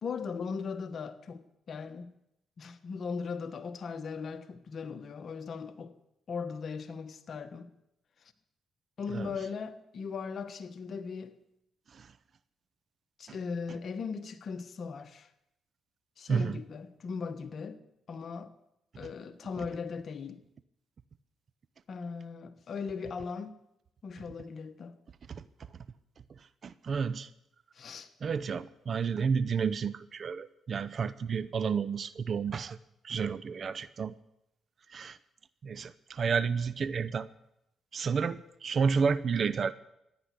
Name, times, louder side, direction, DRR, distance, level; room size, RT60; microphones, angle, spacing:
voice 1, 0.0-2.1 2.6-5.9 6.3-7.7 9.0-11.4 13.2-15.3 16.2-17.8 18.1-18.5 19.0-20.4 21.9-23.5 24.0-24.9 27.7-28.1, left 5 dB, 55° left, 1.3 m, -38 dB
voice 2, 16.3-16.6 25.3-25.4 26.6-27.3 28.2-32.8 33.0-34.1 34.9-35.2 35.6-37.3 37.9-39.7, right 6 dB, 50° right, 0.8 m, -31 dB
15.0 x 10.5 x 8.3 m
supercardioid pair, 65°, 0 cm